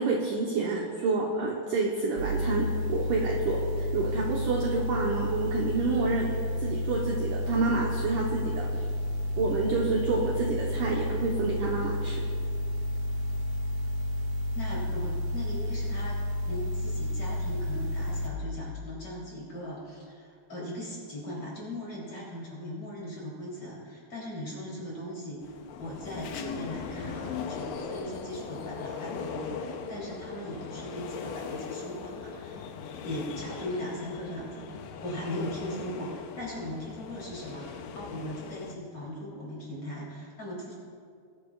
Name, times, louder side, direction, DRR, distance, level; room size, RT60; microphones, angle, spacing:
voice 1, 0.0-6.3 6.6-8.9 9.4-12.2, right 3 dB, 75° right, -2 dB, 1.9 m, -29 dB
sound 1, 2.2-18.3, left 1 dB, 45° right, 2.0 m, -31 dB
voice 2, 14.5-16.2 16.5-32.6 33.0-40.7, equal, 35° left, -5 dB, 3.7 m, -39 dB
sound 2, 25.4-38.8, left 6 dB, 85° left, 3.0 m, -39 dB
21.0 x 12.0 x 2.4 m, 2.3 s
omnidirectional pair, 4.9 m